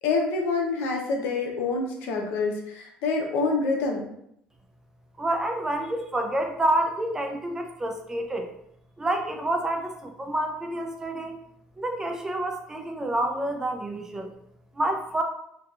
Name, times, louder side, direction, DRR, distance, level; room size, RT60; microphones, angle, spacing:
voice 1, 0.0-4.1, left 3 dB, 80° left, 1 dB, 0.6 m, -26 dB
voice 2, 5.2-8.5 9.0-11.4 11.8-14.3 14.7-15.2, right 1 dB, 15° right, 4 dB, 0.3 m, -28 dB
2.6 x 2.3 x 2.3 m, 0.75 s
cardioid pair, 135°, 4 cm